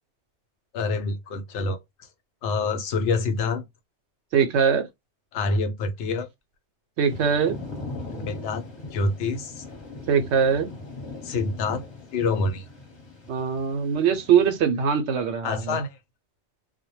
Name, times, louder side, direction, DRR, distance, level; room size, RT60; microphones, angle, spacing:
voice 1, 0.7-1.8 2.4-3.6 5.3-6.3 8.1-8.6 8.9-9.6 11.2-11.8 12.1-12.6 15.4-16.0, left 3 dB, 80° left, 0.9 m, -26 dB
voice 2, 4.3-4.9 7.0-7.6 10.1-10.7 13.3-15.8, right 7 dB, 75° right, 0.8 m, -22 dB
Thunder / Rain, 7.0-14.6, left 2 dB, 25° left, 1.0 m, -40 dB
2.2 x 2.1 x 2.9 m
omnidirectional pair, 1.2 m